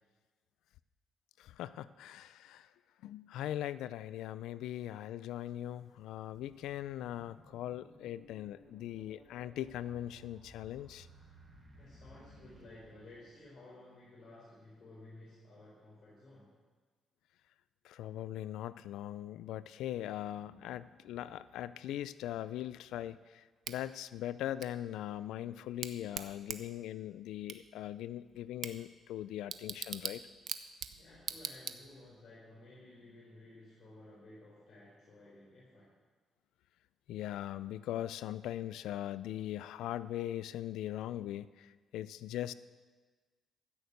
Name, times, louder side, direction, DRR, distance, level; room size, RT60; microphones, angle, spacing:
voice 1, 1.4-2.7 3.0-11.1 17.8-30.2 37.1-42.5, left 12 dB, 85° left, 16 dB, 0.3 m, -40 dB
sound 1, 5.3-5.4 6.0-13.6, right 1 dB, 20° right, 3.5 m, -59 dB
voice 2, 11.8-16.5 30.9-35.9, left 2 dB, 50° left, -6 dB, 4.1 m, -55 dB
Bicycle / Tick, 23.6-32.2, right 8 dB, 65° right, 0.7 m, -45 dB
14.5 x 6.6 x 8.0 m, 1.4 s
cardioid pair, 90°, 0 cm